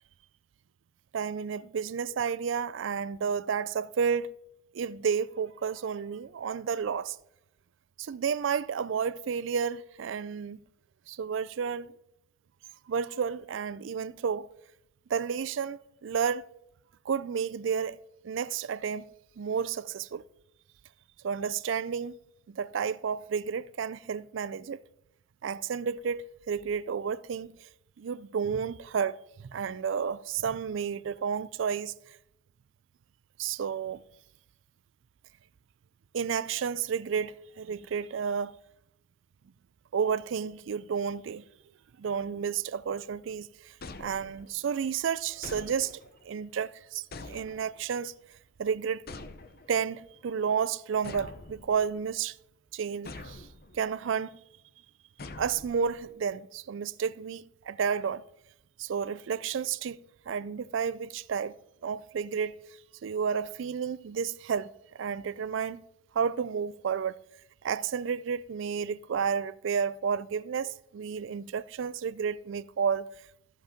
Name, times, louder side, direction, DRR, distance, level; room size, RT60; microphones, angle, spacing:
voice 1, 1.1-4.3 4.7-7.2 8.0-10.6 11.1-11.9 12.9-14.5 15.1-16.5 17.1-18.0 18.2-19.1 19.4-20.2 21.2-22.2 22.5-24.8 25.4-27.7 28.0-32.2 33.4-34.0 36.1-38.6 39.9-41.4 42.0-46.0 46.2-48.1 48.6-49.0 49.7-52.4 52.7-53.5 53.7-54.4 55.4-58.2 58.8-60.0 60.3-61.5 61.8-62.5 63.0-65.8 66.1-67.2 67.6-73.1, right 6 dB, 70° right, 0.4 m, -31 dB
sound 1, 43.8-44.7 45.4-46.3 47.1-48.0 49.1-49.9 51.0-52.1 53.1-53.8 55.2-56.1, left 3 dB, 50° left, 0.8 m, -45 dB
14.0 x 5.3 x 5.1 m
head